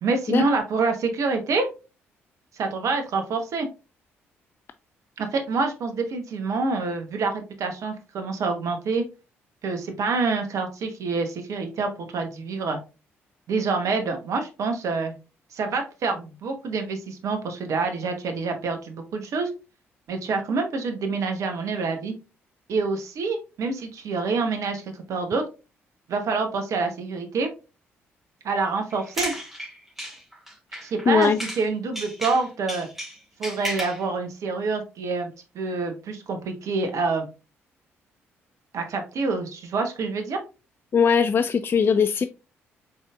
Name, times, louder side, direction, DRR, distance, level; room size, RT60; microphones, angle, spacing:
voice 1, 0.0-1.7 2.5-3.7 5.2-9.0 9.6-12.8 13.5-15.1 15.5-19.5 20.1-22.1 22.7-24.8 25.1-25.4 26.1-27.5 28.4-29.3 30.8-32.9 33.4-35.3 35.5-37.2 38.7-40.4, right 4 dB, 55° right, 6 dB, 1.0 m, -27 dB
sound 1, 28.9-31.7 31.9-34.0, equal, 5° right, 2.1 m, -34 dB
voice 2, 31.1-31.4 40.9-42.2, left 6 dB, 35° left, 11 dB, 0.3 m, -20 dB
5.4 x 4.1 x 2.4 m, 0.30 s
figure-of-eight pair, 45°, 7 cm